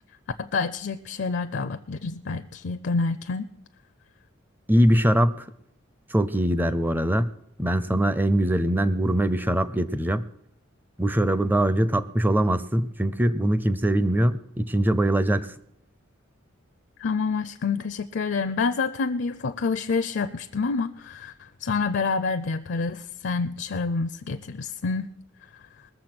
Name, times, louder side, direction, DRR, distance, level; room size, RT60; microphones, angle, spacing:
voice 1, 0.4-3.5 17.0-25.1, left 4 dB, 55° left, 10 dB, 0.5 m, -28 dB
voice 2, 4.7-5.5 6.1-7.3 7.6-10.2 11.0-15.5, right 1 dB, 10° right, 14 dB, 0.5 m, -22 dB
20.0 x 7.0 x 6.0 m, 0.75 s
head